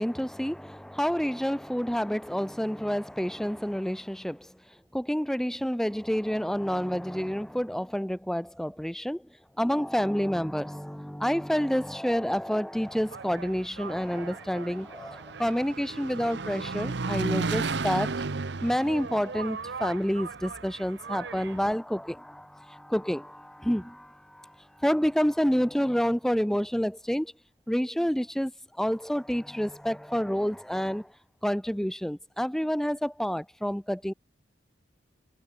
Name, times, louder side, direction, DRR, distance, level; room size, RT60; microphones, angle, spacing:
voice 1, 0.0-4.5 4.9-9.3 9.6-18.1 18.6-27.3 27.7-28.5 28.8-31.1 31.4-34.1, equal, ahead, 0.4 m, -29 dB
Engine, 12.9-21.7, right 4 dB, 70° right, 0.8 m, -35 dB
head